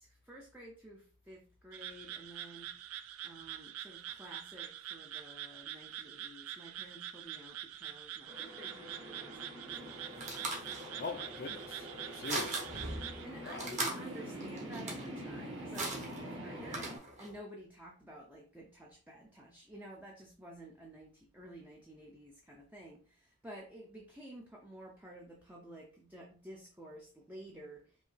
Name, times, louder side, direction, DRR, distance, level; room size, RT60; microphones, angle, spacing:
voice 1, 0.0-2.7 3.2-10.3 10.7-10.8 12.2-13.0 13.2-28.0, right 1 dB, 10° right, 0.5 m, -52 dB
sound 1, 1.7-13.2, right 11 dB, 85° right, 0.4 m, -45 dB
sound 2, 8.3-17.0, equal, 60° right, 1.7 m, -46 dB
sound 3, 9.7-17.4, right 2 dB, 35° right, 1.1 m, -41 dB
voice 2, 11.0-12.7 13.4-13.7, left 4 dB, 40° left, 0.4 m, -42 dB
5.2 x 2.8 x 3.3 m
head